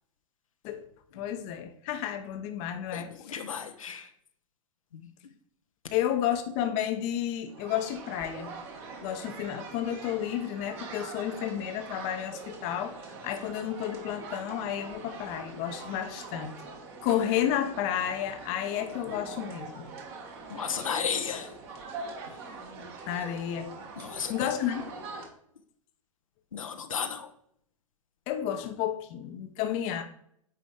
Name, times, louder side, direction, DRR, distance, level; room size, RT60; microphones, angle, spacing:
voice 1, 1.1-3.1 5.9-8.5 9.0-13.0 13.2-16.5 17.0-19.9 23.1-23.7 24.3-24.8 28.3-30.0, left 10 dB, 40° left, 8 dB, 0.9 m, -31 dB
voice 2, 2.9-4.1 4.9-5.3 20.5-21.6 22.3-22.4 24.0-24.5 26.5-27.3, left 7 dB, 75° left, 6 dB, 0.9 m, -35 dB
sound 1, 7.5-25.3, right 4 dB, 50° right, 1.9 m, -43 dB
9.4 x 4.1 x 4.9 m, 0.68 s
figure-of-eight pair, 100°, 17 cm